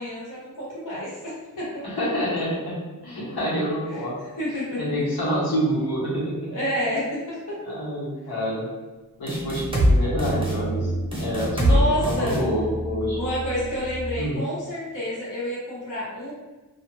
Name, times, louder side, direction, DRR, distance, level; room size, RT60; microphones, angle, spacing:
voice 1, 0.0-1.8 3.9-4.0 4.4-4.8 6.5-7.8 11.6-12.4 13.2-16.3, equal, 55° left, -7 dB, 0.9 m, -29 dB
voice 2, 1.8-2.7 3.0-4.1 4.8-6.4 7.6-8.7 9.2-10.9 11.2-13.2 14.2-14.4, equal, 90° left, -8 dB, 1.1 m, -27 dB
sound 1, 9.3-9.9 10.2-10.5 11.1-11.8 12.0-12.4, equal, 15° right, 0.7 m, -22 dB
sound 2, 9.3-14.4, right 3 dB, 65° right, 0.5 m, -32 dB
2.4 x 2.4 x 3.0 m, 1.2 s
wide cardioid pair, 100°, 36 cm